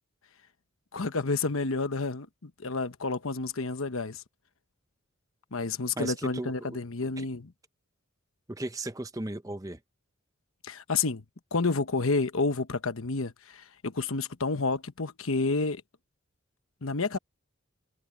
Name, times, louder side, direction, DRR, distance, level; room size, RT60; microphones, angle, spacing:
voice 1, 0.9-4.2 5.5-7.5 10.6-11.2 11.5-15.8 16.8-17.2, left 3 dB, 75° left, 1.1 m, -30 dB
voice 2, 6.0-7.3 8.5-9.8, right 1 dB, 15° right, 0.7 m, -37 dB
head